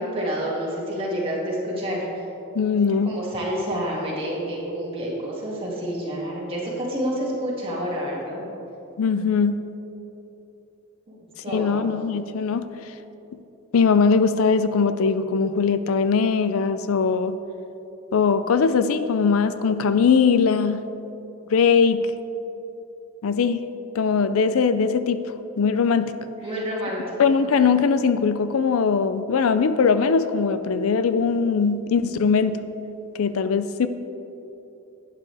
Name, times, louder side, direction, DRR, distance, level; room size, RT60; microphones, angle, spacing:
voice 1, 0.0-2.2 3.1-8.4 11.1-11.2 11.4-11.8 26.4-27.0, equal, 25° right, -5 dB, 2.3 m, -28 dB
voice 2, 2.5-3.1 9.0-9.7 11.5-12.7 13.7-17.4 18.1-20.8 21.5-22.0 23.2-23.7 23.9-26.1 27.2-32.6 33.2-33.9, left 5 dB, 85° left, 12 dB, 0.4 m, -20 dB
11.5 x 9.4 x 3.4 m, 3.0 s
head